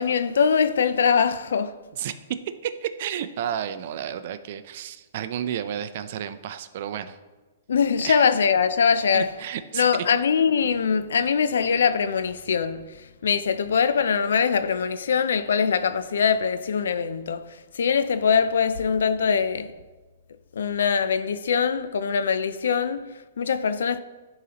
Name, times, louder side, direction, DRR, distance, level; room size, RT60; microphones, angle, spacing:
voice 1, 0.0-1.8 7.7-9.3 9.7-19.7 20.5-24.0, left 6 dB, 80° left, 0.4 m, -23 dB
voice 2, 2.6-7.2 8.0-8.3 9.1-10.1, right 10 dB, 55° right, 0.5 m, -32 dB
11.0 x 3.9 x 2.9 m
hypercardioid pair, 140°, 0 cm